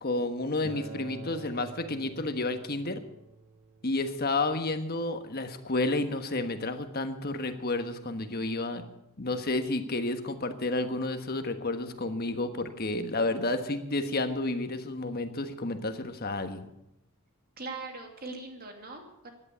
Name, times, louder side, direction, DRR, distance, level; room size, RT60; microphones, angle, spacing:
voice 1, 0.0-3.0 3.8-8.8 9.2-16.7, left 2 dB, 45° left, 8 dB, 1.4 m, -31 dB
Acoustic guitar, 0.6-5.8, right 4 dB, 20° right, 6.6 m, -48 dB
voice 2, 17.6-19.3, right 3 dB, 40° right, 3 dB, 2.8 m, -41 dB
16.0 x 11.0 x 6.9 m, 0.84 s
head